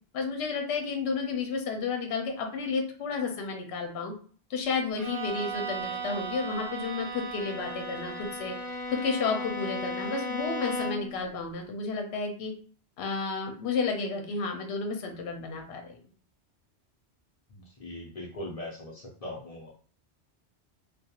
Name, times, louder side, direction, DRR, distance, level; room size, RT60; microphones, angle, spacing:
voice 1, 0.1-4.1 4.5-8.5 8.9-12.5 13.0-16.0, left 4 dB, 70° left, 3 dB, 0.8 m, -32 dB
Bowed string instrument, 5.0-11.2, right 1 dB, 5° left, 0.7 m, -35 dB
voice 2, 17.5-19.7, left 1 dB, 40° left, -2 dB, 0.6 m, -40 dB
2.3 x 2.3 x 2.8 m, 0.43 s
omnidirectional pair, 1.1 m